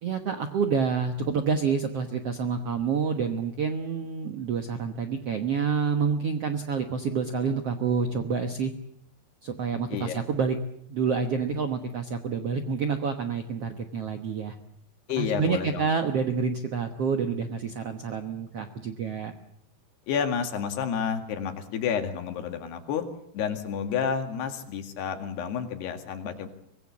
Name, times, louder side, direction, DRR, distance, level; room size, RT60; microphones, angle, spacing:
voice 1, 0.0-8.7 9.4-10.6 10.9-14.5 15.2-19.3, right 5 dB, 90° right, 7 dB, 1.3 m, -28 dB
voice 2, 15.1-15.9 20.1-23.0 23.3-26.5, left 7 dB, 75° left, 6 dB, 4.1 m, -30 dB
24.5 x 20.0 x 8.4 m, 0.70 s
omnidirectional pair, 4.8 m